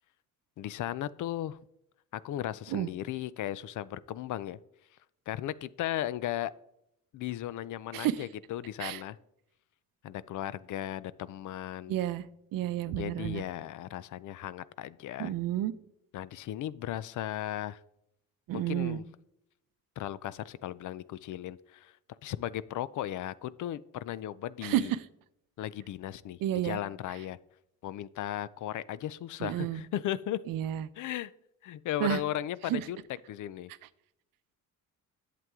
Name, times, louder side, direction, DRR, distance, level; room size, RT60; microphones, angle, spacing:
voice 1, 0.6-1.6 2.1-4.6 5.3-6.5 7.1-9.2 10.0-11.9 12.9-15.3 16.1-17.8 18.5-19.0 20.0-21.9 22.2-24.9 25.6-27.4 27.8-30.4 31.0-31.3 31.6-33.0 33.3-33.7, left 12 dB, 65° left, 18 dB, 0.5 m, -36 dB
voice 2, 7.9-8.2 8.8-9.0 11.9-13.4 15.2-15.7 18.5-19.0 24.6-25.1 26.4-26.8 29.4-29.8 30.5-30.9 32.0-32.2 32.6-32.9, right 12 dB, 80° right, 14 dB, 0.7 m, -31 dB
11.0 x 7.6 x 3.6 m, 0.79 s
cardioid pair, 125°, 33 cm